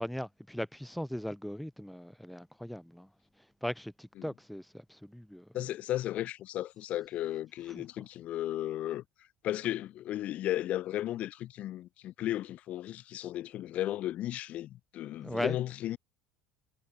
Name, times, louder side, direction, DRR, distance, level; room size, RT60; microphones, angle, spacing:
voice 1, 0.0-3.1 3.4-5.5 7.7-7.8 15.2-15.6, equal, ahead, 6.5 m, -38 dB
voice 2, 5.5-9.0 9.4-16.0, left 13 dB, 50° left, 6.2 m, -35 dB
cardioid pair, 130°, 3 cm